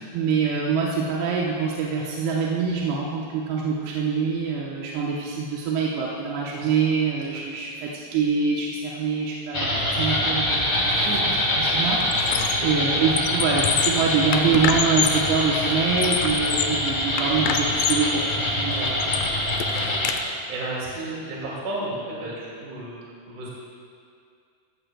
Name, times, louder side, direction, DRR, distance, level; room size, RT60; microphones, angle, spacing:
voice 1, 0.1-18.9, right 5 dB, 85° right, -3 dB, 3.0 m, -25 dB
sound 1, 9.5-20.2, left 1 dB, 40° left, 0.6 m, -24 dB
Squeak, 10.9-11.2 11.5-12.7 13.1-15.3 15.8-16.8 17.2-18.1 18.6-20.2, left 9 dB, 90° left, 1.9 m, -28 dB
voice 2, 19.7-23.5, right 2 dB, 55° right, -6 dB, 3.5 m, -34 dB
15.0 x 15.0 x 2.3 m, 2.3 s
omnidirectional pair, 4.6 m